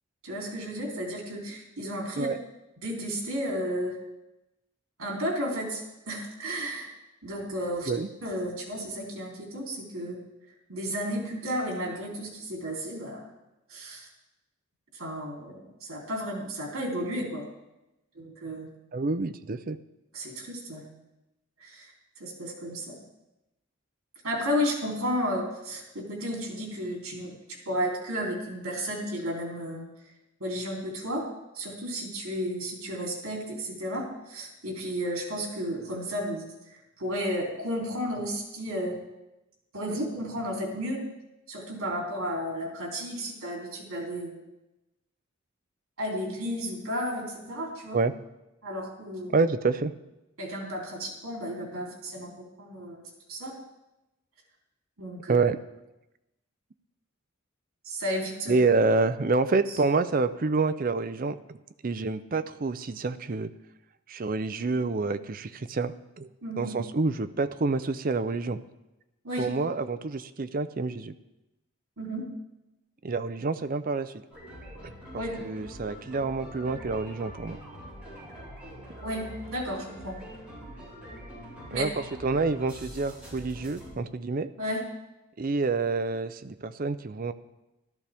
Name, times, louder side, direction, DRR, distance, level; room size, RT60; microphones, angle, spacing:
voice 1, 0.2-2.3 2.8-4.0 5.0-6.9 7.2-7.9 8.2-10.2 10.7-13.3 13.7-14.1 14.9-17.5 18.1-18.7 20.1-20.9 21.6-23.0 24.2-27.3 27.6-29.9 30.4-31.3 31.5-39.0 39.7-41.0 41.5-44.4 46.0-48.0 48.6-49.3 50.4-53.5 55.0-55.4 57.8-58.6 66.4-66.7 69.2-69.5 72.0-72.3 75.1-75.4 79.0-80.2 81.7-81.8 84.6-84.8, equal, 75° right, -1 dB, 3.2 m, -33 dB
voice 2, 18.9-19.8 47.9-48.1 49.3-49.9 55.3-55.6 58.5-61.6 61.8-63.5 64.1-66.3 66.6-68.6 69.4-71.1 73.0-74.1 74.8-77.6 81.7-84.5 85.4-87.3, right 3 dB, 40° right, 12 dB, 0.5 m, -28 dB
sound 1, 74.3-83.9, equal, 5° right, 4.2 m, -44 dB
13.5 x 13.0 x 3.5 m, 0.96 s
head